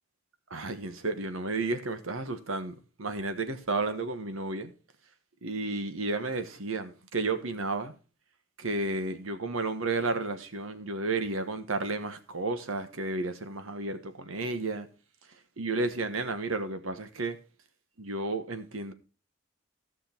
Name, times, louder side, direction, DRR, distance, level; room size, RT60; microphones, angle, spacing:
voice 1, 0.5-4.7 5.4-7.9 8.6-14.9 15.6-17.4 18.0-18.9, right 3 dB, 90° right, 1.3 m, -32 dB
15.0 x 6.3 x 4.4 m
head